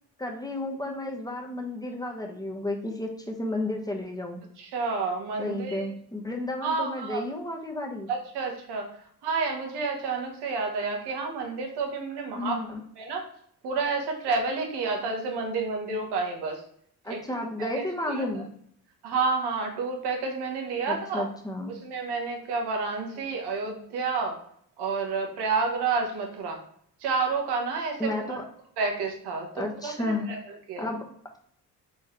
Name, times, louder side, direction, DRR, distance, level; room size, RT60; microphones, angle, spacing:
voice 1, 0.2-4.4 5.4-8.1 12.4-12.8 17.0-18.5 20.9-21.7 23.1-23.3 28.0-28.4 29.5-31.0, left 1 dB, 10° left, 1 dB, 1.3 m, -32 dB
voice 2, 4.6-5.9 6.6-7.2 8.1-8.9 9.2-12.6 13.0-13.2 13.6-16.6 17.1-17.2 17.6-17.7 18.1-18.2 19.0-21.3 21.7-24.4 24.8-26.6 27.0-28.4 28.8-30.4 30.7-30.9, right 4 dB, 75° right, 2 dB, 1.3 m, -30 dB
4.2 x 3.9 x 3.2 m, 0.65 s
hypercardioid pair, 55°, 41 cm